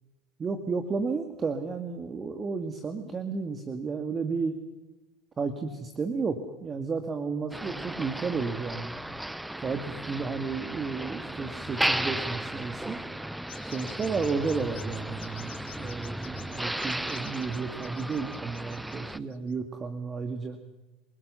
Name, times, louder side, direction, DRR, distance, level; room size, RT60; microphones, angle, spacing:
voice 1, 0.4-4.6 5.4-9.0 9.6-13.0 13.7-20.6, right 4 dB, 30° right, 8 dB, 2.1 m, -32 dB
Motor vehicle (road), 7.5-19.2, right 1 dB, 5° right, 0.7 m, -35 dB
sound 1, 13.5-19.5, left 13 dB, 85° left, 1.8 m, -50 dB
27.0 x 18.5 x 6.9 m, 1.1 s
hypercardioid pair, 90°, 0 cm